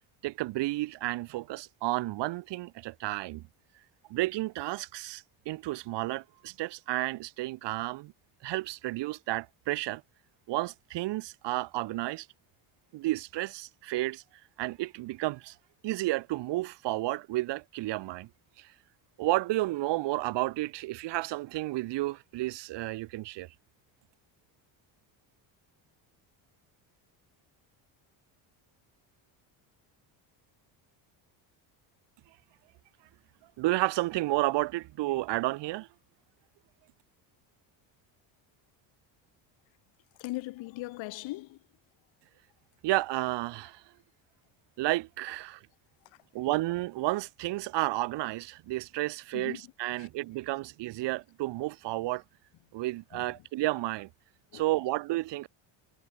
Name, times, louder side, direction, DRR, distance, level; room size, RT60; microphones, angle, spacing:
voice 1, 0.2-3.4 4.1-8.1 8.4-10.0 10.5-12.3 12.9-14.2 14.6-15.5 15.8-18.3 18.6-18.7 19.2-23.5 33.6-35.9 42.8-43.8 44.8-45.6 46.3-52.2 52.7-54.1 54.5-55.5, right 18 dB, 65° right, 1.6 m, -31 dB
voice 2, 40.2-41.6 49.3-49.6 50.0-50.1 53.1-53.3 54.5-54.7, left 19 dB, 75° left, 3.1 m, -39 dB
cardioid pair, 170°, 46 cm